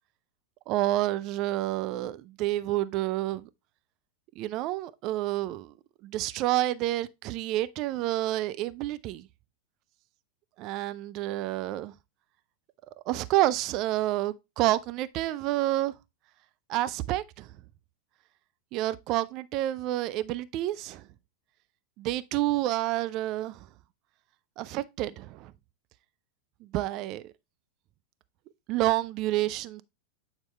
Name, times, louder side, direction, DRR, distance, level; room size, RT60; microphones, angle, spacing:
voice 1, 0.7-3.5 4.4-5.7 6.0-9.3 10.6-11.9 13.1-15.9 16.7-17.5 18.7-21.1 22.0-23.7 24.6-25.5 26.6-27.3 28.7-29.8, right 15 dB, 40° right, 0.5 m, -29 dB
8.7 x 4.4 x 3.3 m
figure-of-eight pair, 90°, 0 cm